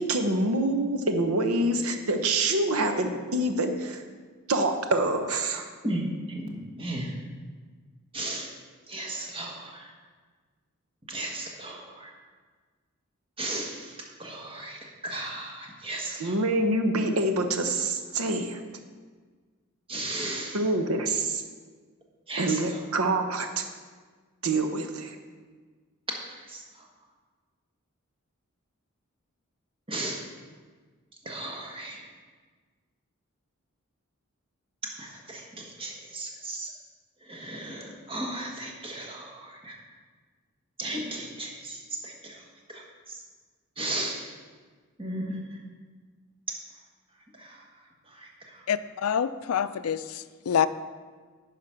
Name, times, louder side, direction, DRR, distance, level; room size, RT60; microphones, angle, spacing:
voice 1, 0.0-4.0 4.5-5.7 16.2-18.6 20.5-21.4 22.4-23.6 24.4-25.2, right 2 dB, 85° right, 6 dB, 0.9 m, -26 dB
voice 2, 6.3-7.2 8.1-8.5 8.9-9.9 11.1-12.1 13.4-16.4 19.9-20.6 22.3-22.8 26.3-26.8 29.9-30.2 31.2-32.0 35.0-36.7 37.2-39.8 40.8-42.4 42.7-43.2 43.8-44.3 45.0-45.3 47.4-47.6 48.1-48.6, right 1 dB, 25° right, 0 dB, 1.4 m, -36 dB
voice 3, 48.7-50.7, left 8 dB, 75° left, 14 dB, 0.4 m, -27 dB
9.8 x 5.0 x 5.8 m, 1.5 s
head